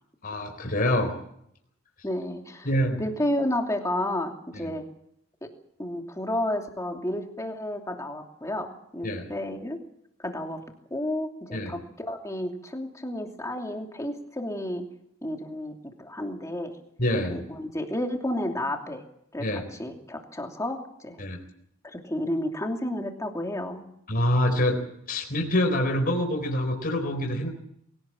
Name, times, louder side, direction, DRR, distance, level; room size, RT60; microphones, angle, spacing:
voice 1, 0.2-1.1 2.6-3.0 4.5-4.7 9.0-9.3 11.5-11.7 17.0-17.4 19.4-19.6 21.2-21.4 24.1-24.8 25.1-27.5, left 1 dB, 45° left, 3 dB, 4.1 m, -26 dB
voice 2, 2.0-2.7 3.0-4.8 5.4-5.5 5.8-9.8 10.2-10.6 10.9-14.9 15.2-15.7 16.0-16.8 17.3-19.0 19.3-21.2 21.8-23.8, left 1 dB, 15° left, 3 dB, 2.8 m, -31 dB
23.0 x 17.5 x 7.6 m, 0.73 s
head